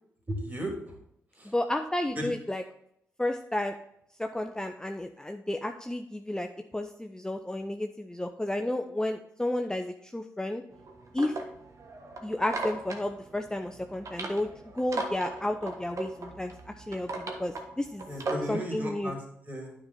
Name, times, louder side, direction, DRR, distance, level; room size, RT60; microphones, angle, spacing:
voice 1, 0.3-1.0 1.3-1.5 2.1-2.3 18.1-19.7, equal, 25° right, 0 dB, 3.2 m, -35 dB
voice 2, 1.4-2.6 3.2-3.7 4.2-6.5 6.7-10.6 11.1-11.3 12.2-14.5 14.7-18.0 18.5-19.1, left 1 dB, 10° left, 5 dB, 0.7 m, -32 dB
sound 1, 10.7-18.6, right 3 dB, 55° right, 1.4 m, -38 dB
9.5 x 5.3 x 4.3 m, 0.74 s
hypercardioid pair, 40°, 7 cm